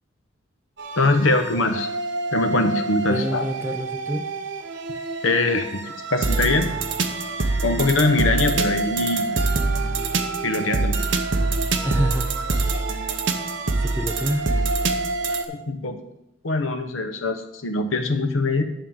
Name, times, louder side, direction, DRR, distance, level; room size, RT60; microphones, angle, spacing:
sound 1, 0.8-15.4, right 3 dB, 65° right, 0.8 m, -25 dB
voice 1, 1.0-1.9 2.3-3.5 5.2-6.7 7.6-9.3 10.4-11.0 15.5-16.0 16.4-18.6, left 2 dB, 85° left, 7 dB, 1.0 m, -22 dB
voice 2, 3.1-4.3 11.8-12.3 13.8-14.5, equal, 10° right, 6 dB, 0.7 m, -27 dB
11.0 x 3.7 x 7.1 m, 0.84 s
head